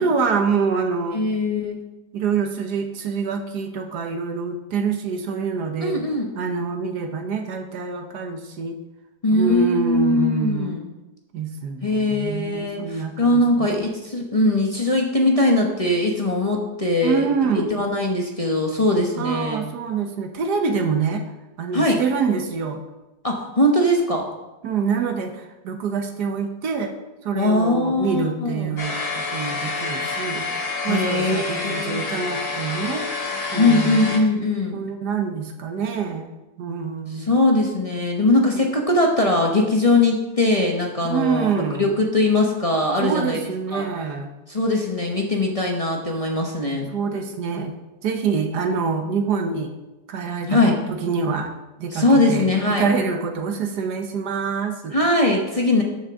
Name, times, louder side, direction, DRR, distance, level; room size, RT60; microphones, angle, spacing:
voice 1, 0.0-1.2 2.1-5.9 6.3-8.8 9.3-10.8 11.3-13.7 17.0-17.7 19.2-21.2 21.6-22.8 24.6-26.9 27.2-29.0 29.3-30.4 30.8-33.1 33.5-34.1 34.7-36.3 36.6-37.3 41.0-41.9 43.0-44.3 46.9-47.7 48.0-49.7 50.1-51.5 51.8-54.9, right 5 dB, 80° right, 5 dB, 1.6 m, -25 dB
voice 2, 1.1-1.8 5.8-6.3 9.2-10.9 11.8-17.3 17.7-19.6 21.7-22.0 23.2-24.2 27.3-28.8 30.9-32.1 33.6-34.8 37.1-43.4 43.7-43.8 44.5-46.9 50.5-50.7 51.9-52.9 54.9-55.8, left 2 dB, 25° left, -1 dB, 0.9 m, -21 dB
sound 1, 28.8-34.2, left 3 dB, 55° left, 2.0 m, -28 dB
13.0 x 6.3 x 3.7 m, 1.0 s
omnidirectional pair, 1.8 m